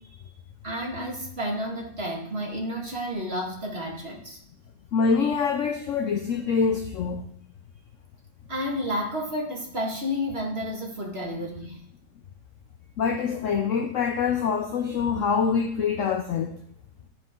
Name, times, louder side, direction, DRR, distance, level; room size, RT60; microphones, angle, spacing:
voice 1, 0.6-4.4 8.5-11.8, equal, 35° right, 2.2 m, -31 dB
voice 2, 4.9-7.2 13.0-16.5, left 5 dB, 65° left, 0.8 m, -25 dB
14.0 x 4.8 x 3.7 m
omnidirectional pair, 1.9 m